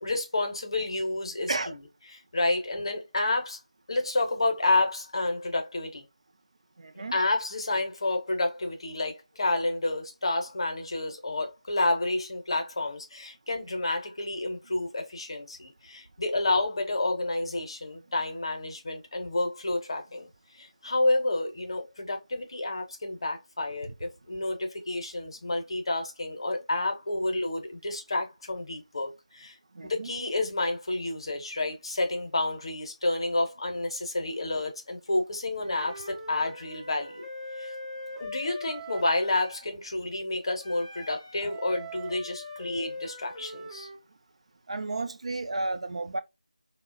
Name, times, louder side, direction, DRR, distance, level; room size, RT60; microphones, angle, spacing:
voice 1, 0.0-1.8 2.1-3.6 3.9-6.0 7.1-20.3 20.5-29.6 29.9-37.3 37.6-37.7 38.2-43.9, left 2 dB, 45° left, 0.6 m, -30 dB
voice 2, 6.8-7.1 29.7-30.1 44.7-46.2, right 2 dB, 55° right, 0.3 m, -32 dB
Wind instrument woodwind instrument, 35.6-39.7 40.6-44.0, left 1 dB, 5° left, 0.5 m, -41 dB
2.7 x 2.1 x 2.4 m
figure-of-eight pair, 170°, 4 cm